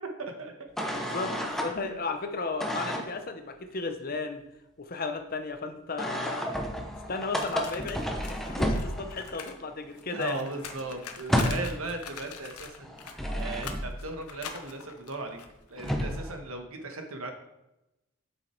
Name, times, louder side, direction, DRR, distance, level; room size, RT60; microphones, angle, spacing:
voice 1, 0.2-0.7 1.8-2.0 10.1-15.4 15.7-17.3, right 2 dB, 70° right, 5 dB, 1.4 m, -38 dB
sound 1, 0.8-1.7 2.6-3.1 6.0-9.4 9.7-9.8 10.1-11.8 12.8-14.0 15.5-15.6 15.8-16.3, equal, ahead, 0.9 m, -31 dB
voice 2, 0.9-1.4 1.6-4.4 4.8-6.5 7.1-10.4, left 4 dB, 40° left, 7 dB, 0.8 m, -34 dB
sound 2, 7.3-9.6 9.8-15.9, left 6 dB, 90° left, 0.9 m, -43 dB
8.2 x 6.3 x 4.5 m, 0.90 s
head